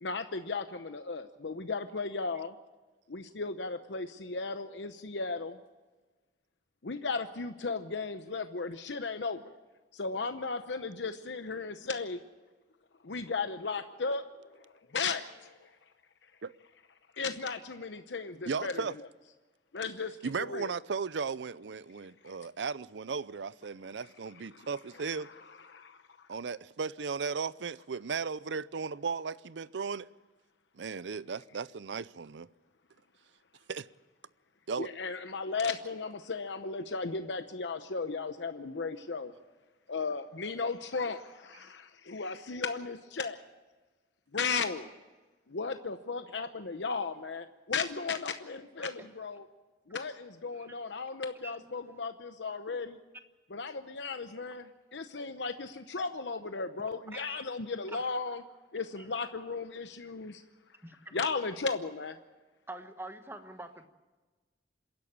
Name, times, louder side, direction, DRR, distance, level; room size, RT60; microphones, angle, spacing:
voice 1, 0.0-2.5 3.1-5.6 6.8-9.5 9.9-12.2 13.0-14.6 14.9-15.7 17.1-18.8 19.7-20.7 24.5-24.7 25.0-26.3 34.8-39.3 39.9-43.4 44.3-44.9 45.5-49.4 49.9-53.0 53.5-58.4 58.7-60.4 61.1-62.2, left 4 dB, 85° left, 8 dB, 0.9 m, -36 dB
voice 2, 18.4-19.0 20.2-25.3 26.3-30.1 30.8-32.5 33.7-33.9 34.7-34.9, right 5 dB, 85° right, 18 dB, 0.6 m, -36 dB
voice 3, 57.1-57.4 57.9-58.1 59.0-59.1 60.8-61.2 62.7-63.9, right 2 dB, 15° right, 8 dB, 1.2 m, -46 dB
26.5 x 11.5 x 8.7 m, 1.3 s
head